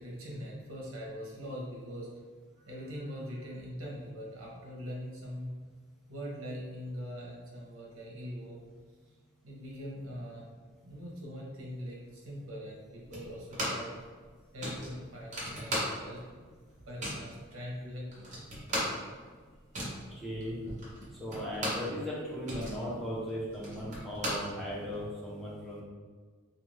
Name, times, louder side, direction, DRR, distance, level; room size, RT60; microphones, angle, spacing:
voice 1, 0.0-2.1 2.6-5.5 6.1-8.6 9.4-10.4 10.8-13.9 14.5-16.4 16.9-18.3, equal, 75° right, -3 dB, 0.8 m, -42 dB
sound 1, 13.1-14.0 14.2-14.3 14.6-16.3 16.6-17.3 17.8-17.9 18.1-21.9 22.3-25.0, equal, 35° right, 0.7 m, -37 dB
voice 2, 20.2-20.6 21.2-25.8, equal, ahead, -7 dB, 0.6 m, -37 dB
2.5 x 2.3 x 3.1 m, 1.5 s
head